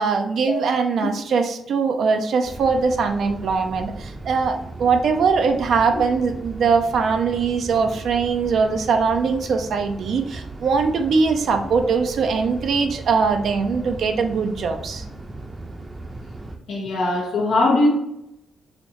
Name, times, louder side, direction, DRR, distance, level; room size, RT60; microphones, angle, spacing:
voice 1, 0.0-15.0, right 5 dB, 65° right, 5 dB, 0.4 m, -21 dB
sound 1, 2.4-16.6, right 2 dB, 25° right, 0.6 m, -37 dB
voice 2, 16.7-17.9, left 2 dB, 75° left, 0 dB, 1.1 m, -20 dB
4.1 x 2.9 x 2.9 m, 0.83 s
supercardioid pair, 55°, 0 cm